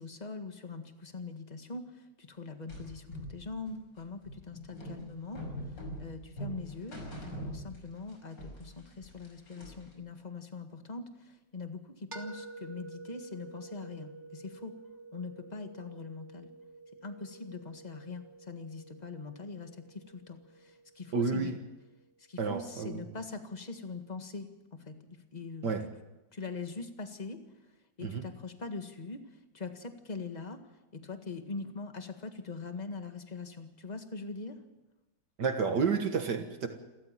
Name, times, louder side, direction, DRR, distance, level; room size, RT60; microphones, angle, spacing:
voice 1, 0.0-5.4 5.7-14.7 15.1-16.5 17.0-21.5 22.2-25.7 26.3-27.7 28.0-30.6 30.9-34.6, left 4 dB, 25° left, 6 dB, 1.7 m, -42 dB
sound 1, 2.7-8.1 8.4-9.9, right 1 dB, 70° left, 6.3 m, -43 dB
sound 2, 12.1-22.0, right 3 dB, 35° right, 2.2 m, -50 dB
voice 2, 21.1-21.6 22.4-23.0 25.6-25.8 28.0-28.2 35.4-36.7, right 5 dB, 65° right, 6 dB, 2.1 m, -30 dB
28.5 x 14.0 x 7.5 m, 1.1 s
omnidirectional pair, 2.1 m